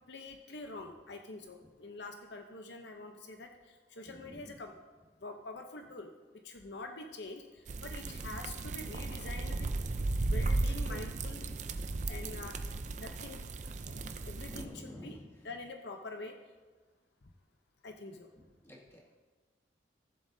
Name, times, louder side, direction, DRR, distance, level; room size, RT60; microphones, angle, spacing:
voice 1, 0.1-4.7 5.2-6.1 6.4-9.7 10.2-11.5 12.1-12.6 13.0-15.2 15.4-16.4 17.8-18.3, left 3 dB, 65° left, 4 dB, 0.7 m, -46 dB
voice 2, 4.1-4.5 11.6-12.3 14.5-15.3 18.6-19.2, equal, 15° left, -2 dB, 1.6 m, -50 dB
sound 1, 7.7-14.6, right 2 dB, 40° right, 0.5 m, -35 dB
16.5 x 7.4 x 2.7 m, 1.3 s
head